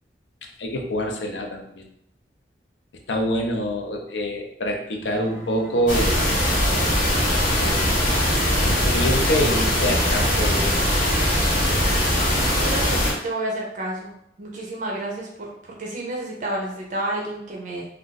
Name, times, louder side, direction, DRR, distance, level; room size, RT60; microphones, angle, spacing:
voice 1, 0.6-1.8 3.1-7.9 8.6-11.0, equal, 70° left, 3 dB, 0.6 m, -27 dB
sound 1, 5.0-10.6, right 1 dB, 10° left, 1.2 m, -38 dB
sound 2, 5.9-13.1, equal, 50° left, 1.1 m, -21 dB
voice 2, 12.6-15.5 15.8-17.9, right 1 dB, 45° right, -2 dB, 0.5 m, -30 dB
2.5 x 2.3 x 3.8 m, 0.75 s
head